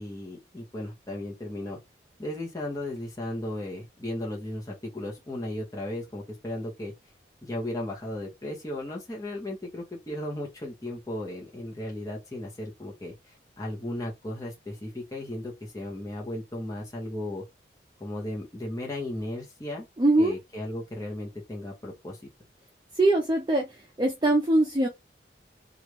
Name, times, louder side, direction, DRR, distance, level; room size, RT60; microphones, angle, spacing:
voice 1, 0.0-1.8 2.2-6.9 7.4-17.4 18.0-19.9 20.2-22.2, left 1 dB, 20° left, 1.0 m, -35 dB
voice 2, 20.0-20.4 22.9-23.7 24.0-24.9, right 2 dB, 20° right, 0.6 m, -22 dB
3.2 x 2.5 x 3.2 m
head